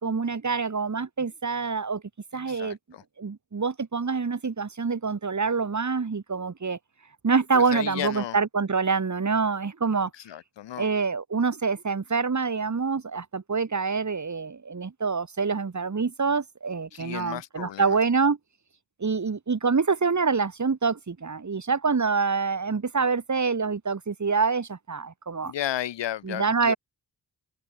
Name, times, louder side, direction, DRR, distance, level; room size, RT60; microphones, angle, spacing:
voice 1, 0.0-2.0 2.3-2.8 3.2-6.8 7.2-10.1 10.8-18.4 19.0-25.5 26.2-26.8, right 5 dB, 40° right, 4.0 m, -26 dB
voice 2, 2.3-3.0 7.5-8.4 10.1-10.9 16.9-18.0 25.4-26.7, left 11 dB, 85° left, 2.8 m, -34 dB
supercardioid pair, 50°, 42 cm